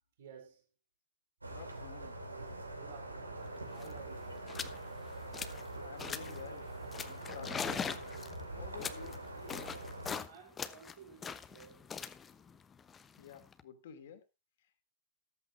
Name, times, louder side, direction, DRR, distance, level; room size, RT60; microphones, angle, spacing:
voice 1, 0.2-0.7 2.5-4.8 9.8-12.0, right 6 dB, 55° right, 4.6 m, -56 dB
sound 1, 1.4-10.2, right 2 dB, 80° right, 2.5 m, -44 dB
voice 2, 1.5-2.2 5.8-6.7 7.0-8.0 8.6-9.2 13.2-14.2, left 9 dB, 55° left, 2.7 m, -50 dB
sound 2, 3.4-3.5 3.7-4.0 4.5-4.8 5.1-5.7 6.0-6.4 6.9-10.3 10.6-13.6, left 6 dB, 20° left, 1.0 m, -42 dB
14.5 x 13.5 x 2.7 m
figure-of-eight pair, 95°, 0 cm